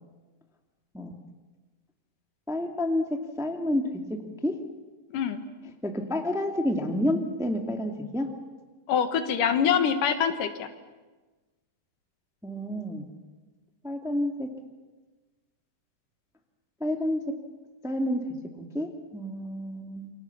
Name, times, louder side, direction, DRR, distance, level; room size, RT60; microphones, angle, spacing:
voice 1, 2.5-3.0 3.4-4.0 4.4-4.5 5.8-8.3 12.4-13.1 13.8-14.5 16.8-17.2 17.8-18.2 18.6-20.1, left 1 dB, ahead, 3 dB, 1.2 m, -29 dB
voice 2, 5.1-5.4 8.9-10.7, left 7 dB, 70° left, 8 dB, 3.0 m, -25 dB
28.5 x 25.0 x 7.1 m, 1.3 s
omnidirectional pair, 3.9 m